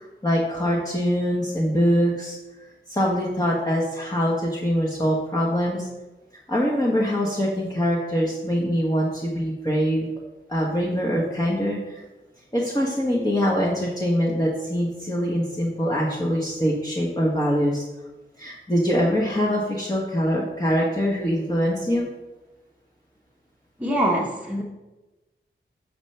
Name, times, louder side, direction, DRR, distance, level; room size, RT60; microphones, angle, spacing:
voice 1, 0.0-2.4 2.9-5.9 6.5-10.1 10.5-12.0 12.5-17.8 18.4-22.1, equal, 15° left, -4 dB, 1.2 m, -23 dB
voice 2, 23.8-24.6, right 1 dB, 5° right, -3 dB, 1.1 m, -23 dB
6.9 x 6.7 x 3.3 m, 1.1 s
cardioid pair, 55°, 21 cm